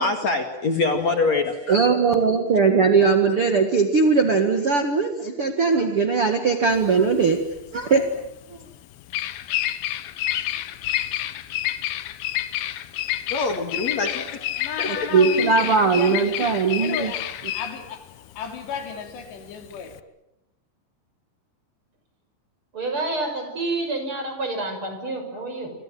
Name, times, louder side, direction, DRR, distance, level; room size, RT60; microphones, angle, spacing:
voice 1, 0.0-1.8 13.3-14.4 14.8-15.1, left 3 dB, 45° left, 5 dB, 2.9 m, -24 dB
voice 2, 1.7-7.4 7.7-8.0 14.9-17.1, right 5 dB, 45° right, 6 dB, 2.0 m, -19 dB
Bird vocalization bird call bird song, 6.7-20.0, left 13 dB, 70° left, 2.8 m, -29 dB
voice 3, 14.5-18.1 18.4-19.9, left 7 dB, 85° left, 5 dB, 5.4 m, -34 dB
voice 4, 22.7-25.7, right 2 dB, 30° right, 5 dB, 6.5 m, -28 dB
27.5 x 27.5 x 7.6 m, 0.84 s
omnidirectional pair, 4.8 m